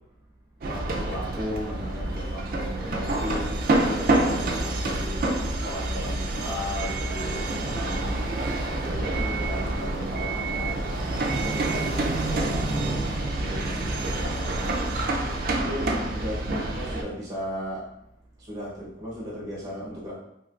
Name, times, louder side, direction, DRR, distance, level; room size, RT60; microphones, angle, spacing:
voice 1, 0.6-5.2 5.6-8.3 8.8-11.5 12.0-13.0 13.3-15.0 15.5-17.8 18.4-20.1, equal, 20° right, -6 dB, 0.9 m, -36 dB
sound 1, 0.6-17.0, right 2 dB, 50° right, 0.4 m, -27 dB
3.1 x 2.9 x 2.4 m, 0.81 s
head